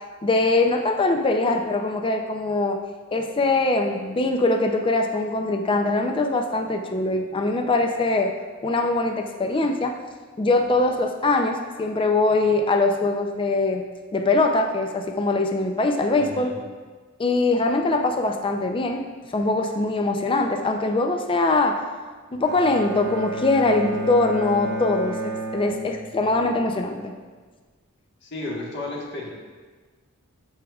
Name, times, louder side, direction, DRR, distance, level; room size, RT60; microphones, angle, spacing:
voice 1, 0.2-2.8 3.1-8.3 8.6-10.0 10.4-13.8 14.1-16.5 17.2-19.0 19.3-21.8 22.3-27.1, left 2 dB, 25° left, 4 dB, 0.4 m, -22 dB
voice 2, 16.2-16.6 28.2-29.3, left 2 dB, 55° left, -3 dB, 1.4 m, -33 dB
Bowed string instrument, 22.4-26.5, right 1 dB, 50° right, 0.8 m, -31 dB
13.0 x 4.8 x 2.3 m, 1.4 s
head